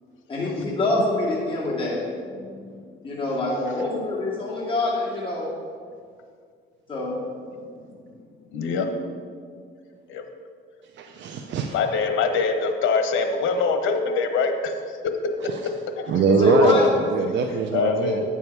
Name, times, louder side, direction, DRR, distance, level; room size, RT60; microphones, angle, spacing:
voice 1, 0.3-2.0 3.0-5.5 6.9-7.2 16.2-16.8, left 2 dB, 25° left, -6 dB, 2.3 m, -24 dB
voice 2, 2.4-2.8 8.5-8.9 10.1-10.2 11.7-14.7 15.0-15.1 17.7-18.2, left 4 dB, 85° left, 6 dB, 1.0 m, -24 dB
voice 3, 10.9-11.8 15.5-15.6 16.1-18.2, right 5 dB, 65° right, 3 dB, 0.7 m, -23 dB
9.4 x 7.0 x 4.6 m, 2.1 s
cardioid pair, 90°, 20 cm